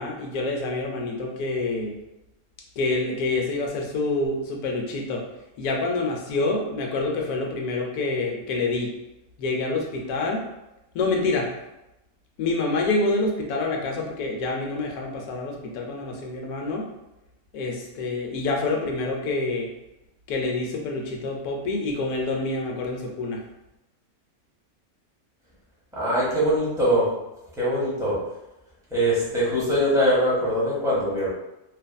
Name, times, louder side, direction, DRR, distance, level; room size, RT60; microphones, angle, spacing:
voice 1, 0.0-2.0 2.8-5.2 5.6-8.9 9.4-10.5 10.9-11.5 12.4-16.9 17.5-19.7 20.3-23.4, left 3 dB, 80° left, 1 dB, 1.1 m, -27 dB
voice 2, 25.9-27.1 27.6-28.2 28.9-31.3, equal, 5° right, -8 dB, 0.6 m, -22 dB
2.5 x 2.5 x 2.3 m, 0.94 s
omnidirectional pair, 1.6 m